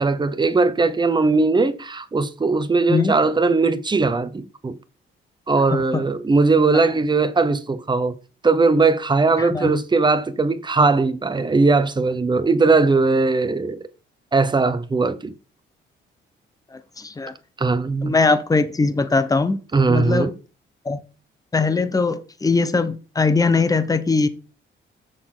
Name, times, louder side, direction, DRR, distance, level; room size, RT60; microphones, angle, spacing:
voice 1, 0.0-4.8 5.5-8.1 8.4-13.8 14.3-15.3 17.6-18.1 19.7-20.3, right 3 dB, 20° right, 1.0 m, -19 dB
voice 2, 5.7-6.0 9.4-9.7 16.7-17.3 18.0-19.6 19.9-20.3 20.8-21.0 21.5-24.3, left 4 dB, 20° left, 0.8 m, -20 dB
6.9 x 6.5 x 3.9 m
cardioid pair, 90°, 20 cm